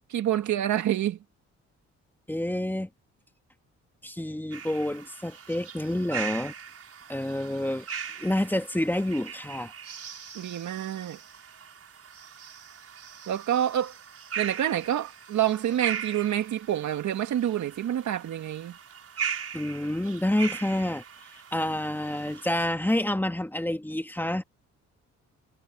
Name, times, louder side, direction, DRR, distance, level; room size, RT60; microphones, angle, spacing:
voice 1, 0.1-1.2 10.3-11.2 13.3-13.9 14.4-18.7, right 11 dB, 70° right, 2.4 m, -27 dB
voice 2, 2.3-2.9 4.0-6.5 7.1-7.9 8.2-9.7 19.5-21.0 21.5-24.4, left 1 dB, 5° left, 2.1 m, -28 dB
sound 1, 4.5-22.6, right 7 dB, 50° right, 5.7 m, -40 dB
cardioid pair, 90°, 30 cm